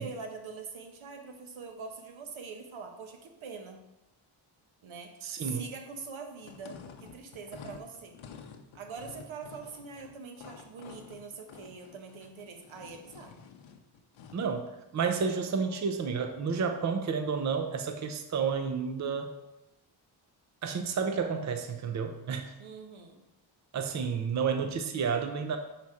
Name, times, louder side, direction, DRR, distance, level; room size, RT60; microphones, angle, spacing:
voice 1, 0.0-3.8 4.8-8.2 8.7-13.3 22.6-23.2, right 5 dB, 85° right, 5 dB, 1.0 m, -44 dB
voice 2, 5.2-5.7 14.3-19.3 20.6-22.5 23.7-25.6, right 6 dB, 40° right, 6 dB, 0.6 m, -31 dB
sound 1, 6.4-14.5, left 6 dB, 90° left, 0.7 m, -50 dB
5.9 x 4.2 x 4.8 m, 0.96 s
wide cardioid pair, 120°, 47 cm